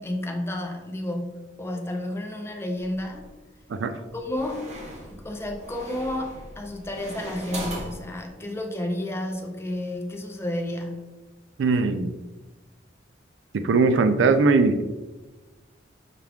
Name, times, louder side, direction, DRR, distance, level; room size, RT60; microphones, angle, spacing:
voice 1, 0.0-3.3 4.1-4.7 5.1-11.1, left 1 dB, 15° left, 2 dB, 0.5 m, -31 dB
sound 1, 2.8-3.4 4.1-8.0, right 1 dB, 40° right, 0.9 m, -39 dB
voice 2, 3.7-4.0 11.6-12.2 13.5-14.8, right 4 dB, 85° right, 9 dB, 0.4 m, -20 dB
5.8 x 2.4 x 3.4 m, 1.1 s
head